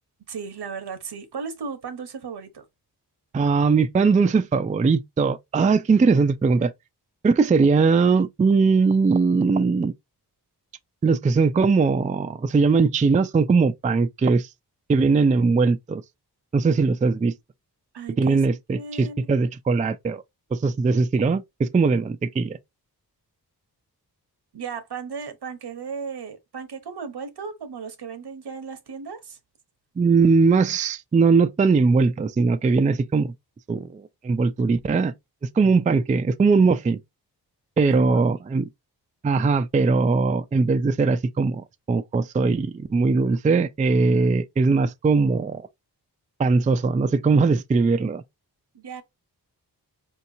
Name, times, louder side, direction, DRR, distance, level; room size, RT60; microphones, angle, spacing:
voice 1, 0.3-2.7 17.9-18.4 18.7-19.3 24.5-29.4 37.9-38.2 48.7-49.0, right 5 dB, 75° right, 0.9 m, -35 dB
voice 2, 3.3-6.7 7.2-9.9 11.0-14.5 14.9-16.0 16.5-17.3 18.2-20.2 20.5-22.6 30.0-33.3 33.7-35.1 35.6-37.0 37.8-38.6 39.2-45.6 46.4-48.2, right 4 dB, 20° right, 0.3 m, -20 dB
4.4 x 2.9 x 2.6 m
wide cardioid pair, 75°, 40 cm